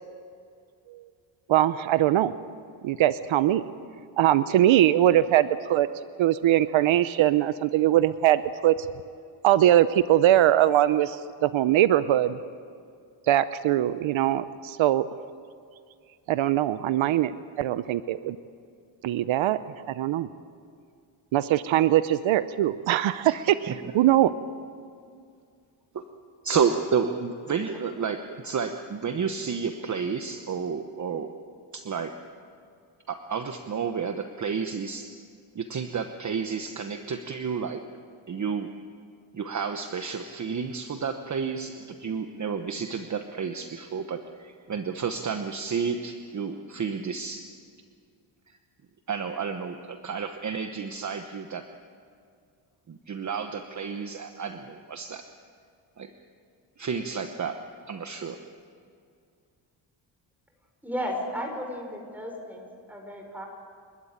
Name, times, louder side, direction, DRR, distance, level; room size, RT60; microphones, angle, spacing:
voice 1, 1.5-2.3 2.8-3.6 4.2-5.9 6.2-8.7 9.4-12.4 13.3-15.0 16.3-18.4 19.0-19.6 20.0-20.3 21.3-24.3, right 13 dB, 80° right, 14 dB, 0.7 m, -22 dB
voice 2, 26.4-31.3 31.7-32.1 33.1-35.1 35.5-37.8 38.3-38.7 39.3-47.4 49.1-51.6 52.9-55.2 56.0-56.1 56.8-57.5 57.9-58.4, right 6 dB, 40° right, 7 dB, 1.0 m, -31 dB
voice 3, 60.8-63.5, equal, 5° right, 1 dB, 5.1 m, -34 dB
29.0 x 12.5 x 8.9 m, 2.3 s
cardioid pair, 125°, 46 cm